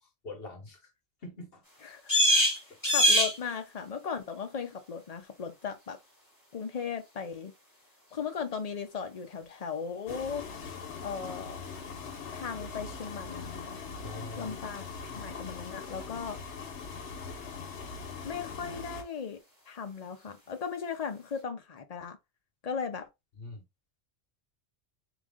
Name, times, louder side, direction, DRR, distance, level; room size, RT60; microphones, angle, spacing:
voice 1, 0.0-0.9 1.2-1.6 14.0-14.5 15.0-15.2 23.4-23.6, left 2 dB, 60° left, 1.3 m, -44 dB
sound 1, 1.6-21.4, equal, 15° left, 1.9 m, -35 dB
voice 2, 2.9-6.0 6.5-7.5 8.1-10.5 11.0-11.6 12.3-13.8 14.4-14.8 15.1-16.4 18.2-19.4 19.7-22.2 22.6-23.1, left 6 dB, 40° left, 0.7 m, -37 dB
sound 2, 10.1-19.0, left 5 dB, 85° left, 1.2 m, -41 dB
3.7 x 3.1 x 3.5 m
omnidirectional pair, 1.1 m